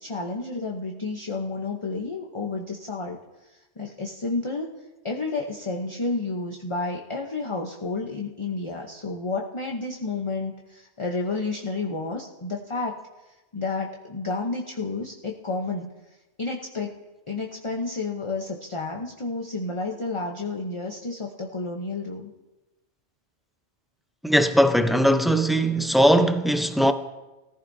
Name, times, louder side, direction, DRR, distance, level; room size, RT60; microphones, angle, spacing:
voice 1, 0.0-4.7 5.0-12.9 13.5-15.9 16.4-16.9 17.3-22.3, left 3 dB, 30° left, 0.8 m, -31 dB
voice 2, 24.2-26.9, equal, ahead, 0.3 m, -19 dB
20.5 x 14.5 x 2.7 m
omnidirectional pair, 1.2 m